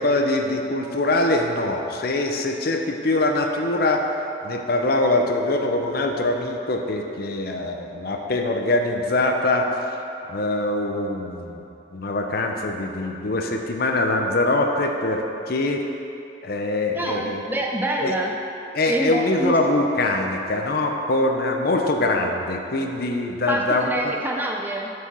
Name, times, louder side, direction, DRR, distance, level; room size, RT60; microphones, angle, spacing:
voice 1, 0.0-4.1 4.4-10.0 10.3-11.6 11.9-15.8 16.4-17.4 18.0-18.2 18.7-24.1, left 2 dB, 60° left, 3 dB, 0.7 m, -23 dB
voice 2, 16.9-18.3 18.9-19.6 23.5-24.9, right 1 dB, 10° right, 0 dB, 0.4 m, -26 dB
7.0 x 4.8 x 6.0 m, 2.9 s
head